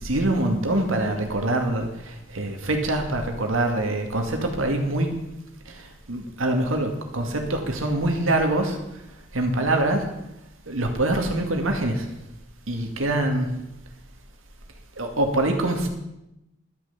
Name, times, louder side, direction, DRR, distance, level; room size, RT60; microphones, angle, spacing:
voice 1, 0.0-5.1 5.7-8.8 9.3-10.0 10.7-12.1 12.7-13.5 15.0-15.9, right 1 dB, 85° right, 3 dB, 2.3 m, -24 dB
11.5 x 10.5 x 7.2 m, 0.88 s
head